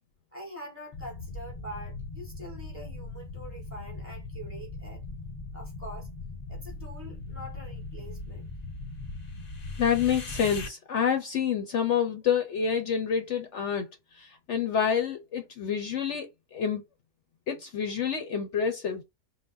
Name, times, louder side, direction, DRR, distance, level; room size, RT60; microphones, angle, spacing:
voice 1, 0.3-5.0 5.5-6.1 6.5-8.5, right 1 dB, 10° right, 1.5 m, -44 dB
sound 1, 0.9-10.7, left 3 dB, 40° left, 0.6 m, -39 dB
voice 2, 9.8-13.9 14.2-16.8 17.5-19.0, left 7 dB, 60° left, 0.9 m, -28 dB
5.6 x 2.3 x 2.6 m
omnidirectional pair, 1.4 m